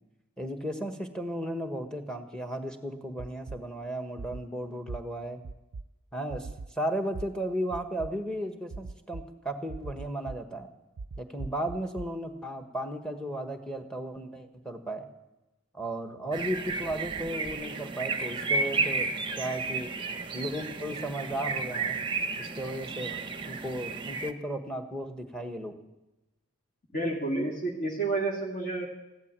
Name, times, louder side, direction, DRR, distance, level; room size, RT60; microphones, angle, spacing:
voice 1, 0.4-5.4 6.1-6.5 6.8-10.7 11.2-15.1 15.7-19.9 20.3-22.0 22.5-25.7, right 1 dB, 5° left, 5 dB, 1.2 m, -35 dB
sound 1, 3.2-3.6 4.2-4.4 4.9-5.0 5.4-5.8 6.3-6.7 7.1-7.2 7.7-8.1 8.7-9.2 9.7-10.4 11.0-12.1, right 3 dB, 80° right, 0.5 m, -38 dB
sound 2, 16.3-24.3, right 4 dB, 20° right, 0.9 m, -32 dB
voice 2, 26.9-28.9, right 2 dB, 45° left, -3 dB, 2.2 m, -30 dB
15.5 x 12.0 x 7.4 m, 1.0 s
head